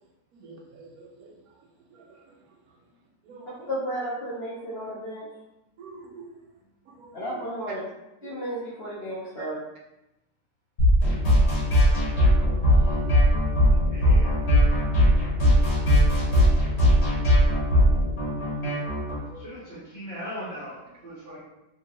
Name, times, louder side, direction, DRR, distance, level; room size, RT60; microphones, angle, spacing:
voice 1, 0.4-1.3 3.3-3.7 5.8-6.2 7.0-7.1 8.2-8.4 11.7-11.8 12.5-12.7 13.0-13.2 15.8-16.0 17.2-17.6 18.6-18.8 19.3-19.4, right 3 dB, 65° right, -1 dB, 1.1 m, -46 dB
voice 2, 3.7-5.3 7.1-7.8 8.2-9.6, equal, 55° left, -5 dB, 0.7 m, -33 dB
sound 1, 10.8-19.2, equal, 40° left, 1.7 m, -19 dB
voice 3, 13.9-14.4 19.3-21.4, equal, 30° right, -13 dB, 1.3 m, -39 dB
3.5 x 3.0 x 2.8 m, 0.93 s
omnidirectional pair, 1.8 m